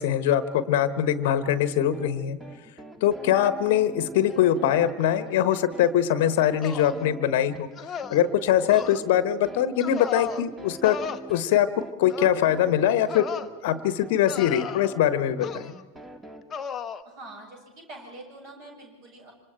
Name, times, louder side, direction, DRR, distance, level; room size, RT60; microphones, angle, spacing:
voice 1, 0.0-2.4 3.0-7.7 8.1-11.0 11.3-11.7 12.0-13.3 13.6-15.7, left 10 dB, 50° left, 14 dB, 1.2 m, -22 dB
sound 1, 1.5-16.4, right 1 dB, 10° right, 1.9 m, -44 dB
sound 2, 6.6-7.0 7.8-8.2 8.7-9.0 9.8-10.4 10.8-11.2 12.1-12.4 13.1-13.5 14.3-15.0 15.4-15.8 16.5-17.0, left 7 dB, 20° left, 1.0 m, -35 dB
voice 2, 17.0-19.3, right 2 dB, 40° right, 0 dB, 7.6 m, -44 dB
27.0 x 26.0 x 4.5 m, 1.2 s
figure-of-eight pair, 90°, 0 cm